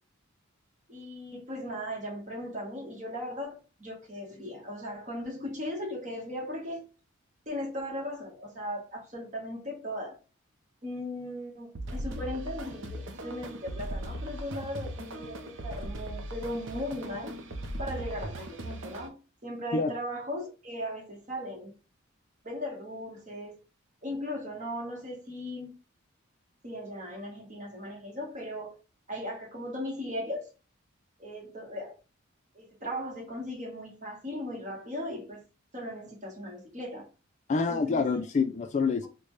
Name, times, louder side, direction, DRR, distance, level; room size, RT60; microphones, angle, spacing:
voice 1, 0.9-6.8 7.5-10.2 10.8-17.4 17.8-19.2 19.4-21.7 22.4-23.6 24.0-25.7 26.6-28.8 29.1-30.5 31.2-32.0 32.5-35.4 35.7-37.1 37.7-38.2, left 1 dB, 35° right, 1.2 m, -37 dB
sound 1, 11.8-19.1, right 1 dB, 65° right, 0.6 m, -38 dB
voice 2, 37.5-39.1, left 4 dB, 35° left, 0.3 m, -27 dB
3.9 x 2.2 x 3.1 m
head